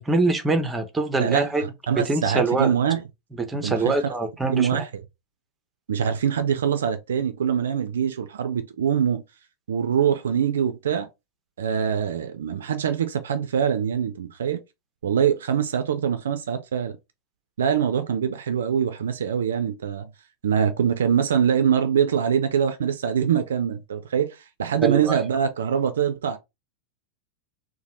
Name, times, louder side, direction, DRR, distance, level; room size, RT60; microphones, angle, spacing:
voice 1, 0.0-1.6 2.0-2.8 3.4-4.8 24.8-25.2, right 3 dB, 10° right, 0.6 m, -24 dB
voice 2, 1.9-3.0 3.6-4.1 4.5-4.9 5.9-9.2 9.7-11.1 11.6-14.6 15.0-16.9 17.6-20.1 20.4-26.4, right 8 dB, 65° right, 0.4 m, -23 dB
2.8 x 2.1 x 3.0 m
figure-of-eight pair, 90°, 0 cm